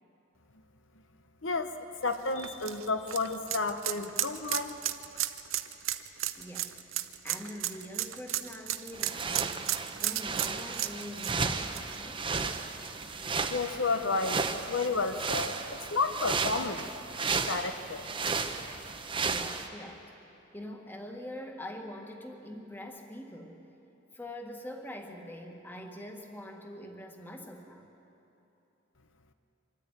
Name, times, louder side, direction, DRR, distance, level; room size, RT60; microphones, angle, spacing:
voice 1, 2.0-4.8 13.5-14.4 14.7-16.8 17.2-18.0 18.7-18.8, left 3 dB, 70° left, 8 dB, 0.9 m, -31 dB
sound 1, 2.1-12.8 13.2-13.3 14.8-14.9, right 13 dB, 90° right, 0.8 m, -34 dB
voice 2, 6.4-6.7 7.2-9.6 10.0-12.3 19.1-20.0 20.5-23.6 24.1-27.9, left 1 dB, 10° left, 3 dB, 1.6 m, -44 dB
sound 2, 8.9-19.7, right 4 dB, 25° right, 0.8 m, -34 dB
25.0 x 13.5 x 9.7 m, 2.9 s
head